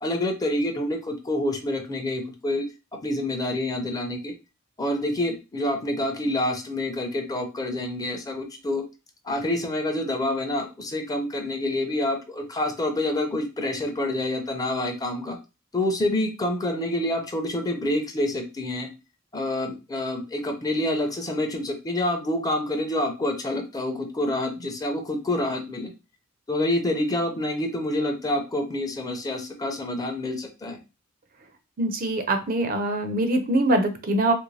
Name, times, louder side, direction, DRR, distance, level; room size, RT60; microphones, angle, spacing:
voice 1, 0.0-2.7 3.0-4.3 4.8-8.8 9.2-15.4 15.7-18.9 19.3-25.9 26.5-30.8, left 1 dB, 20° left, 4 dB, 0.5 m, -27 dB
voice 2, 31.8-34.3, right 1 dB, 45° right, 6 dB, 0.5 m, -23 dB
3.0 x 2.5 x 3.1 m, 0.29 s
head